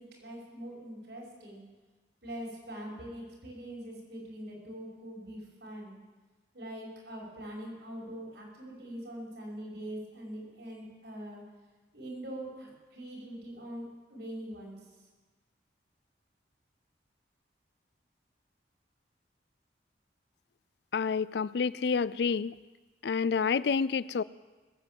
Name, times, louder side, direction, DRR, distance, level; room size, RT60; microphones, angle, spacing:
voice 1, 0.0-1.6 2.2-6.0 6.5-11.4 11.9-14.9, right 1 dB, 80° right, -3 dB, 5.7 m, -43 dB
voice 2, 20.9-22.5 23.0-24.2, left 5 dB, 70° left, 19 dB, 0.4 m, -28 dB
20.5 x 8.5 x 7.7 m, 1.3 s
head